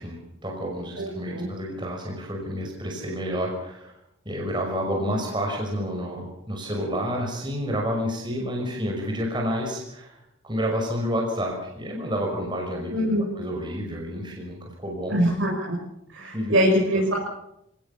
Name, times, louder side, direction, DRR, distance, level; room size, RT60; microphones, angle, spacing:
voice 1, 0.0-4.0 4.3-13.0 13.3-15.2 16.3-16.6 16.9-17.0, equal, 20° right, 0 dB, 5.8 m, -29 dB
voice 2, 1.0-1.5 12.9-13.2 15.1-15.8 16.1-17.1, equal, 70° right, -3 dB, 6.7 m, -23 dB
28.0 x 18.5 x 7.2 m, 0.79 s
head